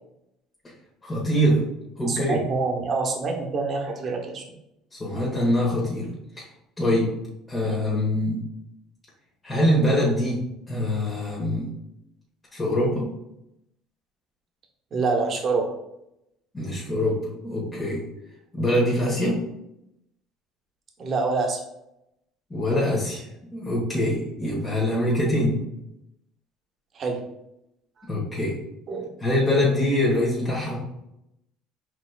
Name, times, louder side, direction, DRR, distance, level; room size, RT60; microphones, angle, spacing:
voice 1, 1.0-1.6 2.0-2.4 4.9-6.1 6.4-6.5 6.8-7.1 7.5-8.4 9.4-11.7 12.5-13.1 16.5-17.2 17.4-18.0 18.5-19.4 22.5-23.2 23.5-25.6 28.1-28.5 29.2-30.8, left 1 dB, 25° left, -5 dB, 1.4 m, -23 dB
voice 2, 2.1-4.4 7.6-7.8 14.9-15.7 21.0-21.6 26.9-27.2 28.9-29.1, right 4 dB, 45° right, 2 dB, 1.0 m, -26 dB
5.0 x 3.3 x 2.4 m, 0.85 s
hypercardioid pair, 70°, 0 cm